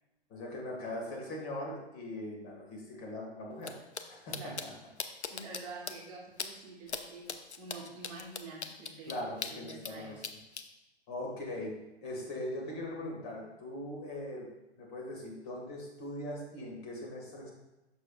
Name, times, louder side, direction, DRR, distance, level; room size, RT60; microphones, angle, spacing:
voice 1, 0.3-3.8 4.1-4.7 9.0-10.2 11.1-11.8 12.0-14.5 14.8-17.5, left 1 dB, 35° left, -2 dB, 2.2 m, -40 dB
sound 1, 3.6-3.7 3.9-4.0 4.3-4.6 5.0-5.6 5.9-6.0 6.4-6.5 6.9-7.0 7.3-9.9 10.2-10.6, left 5 dB, 90° left, 0.7 m, -38 dB
voice 2, 4.3-4.7 5.3-7.3 7.6-10.2, right 3 dB, 35° right, -2 dB, 1.2 m, -47 dB
8.4 x 6.4 x 2.5 m, 0.99 s
figure-of-eight pair, 125°, 33 cm